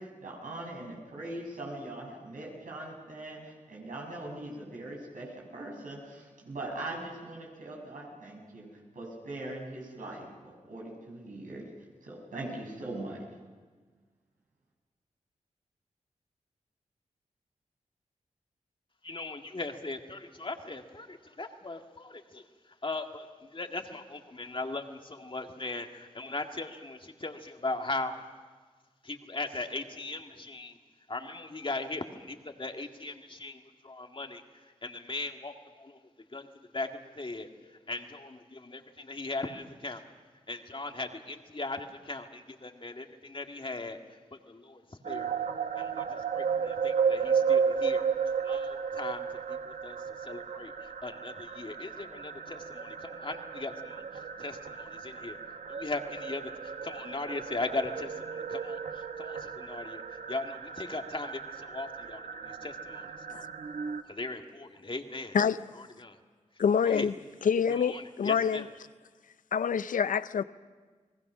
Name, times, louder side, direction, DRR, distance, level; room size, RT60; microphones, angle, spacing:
voice 1, 0.0-8.7 8.9-11.6 12.0-13.2, right 2 dB, 85° right, -1 dB, 6.3 m, -41 dB
voice 2, 19.0-22.4 22.8-28.2 29.0-30.8 31.1-34.4 34.8-36.0 36.3-36.5 36.7-36.9 37.1-37.5 37.9-40.0 40.5-44.0 44.5-45.3 45.8-48.1 48.4-54.0 54.4-55.4 55.7-60.0 60.3-63.1 64.1-65.3 66.0-66.2 66.8-67.1 67.8-68.7, left 2 dB, 40° left, 4 dB, 2.0 m, -38 dB
sound 1, 45.0-64.0, right 6 dB, 70° right, 1.0 m, -34 dB
voice 3, 66.6-67.1 67.4-68.6 69.5-70.4, left 7 dB, 80° left, 15 dB, 0.6 m, -26 dB
29.5 x 19.5 x 6.2 m, 1.4 s
cardioid pair, 45°, 14 cm